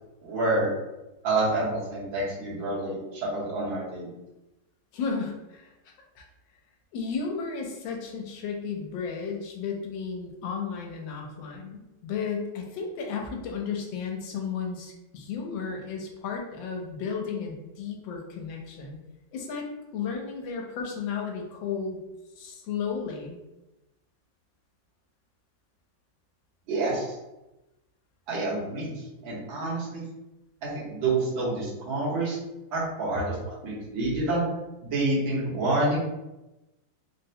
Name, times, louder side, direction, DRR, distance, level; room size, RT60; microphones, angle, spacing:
voice 1, 0.2-0.7 1.2-4.1 26.7-27.2 28.3-30.1 30.6-32.4 32.7-34.4 34.8-36.0, right 2 dB, 80° right, -7 dB, 1.9 m, -28 dB
voice 2, 4.9-5.7 6.2-6.3 6.9-19.0 19.3-22.0 22.4-23.4, left 5 dB, 80° left, 1 dB, 1.4 m, -33 dB
4.0 x 2.1 x 2.7 m, 0.98 s
omnidirectional pair, 2.1 m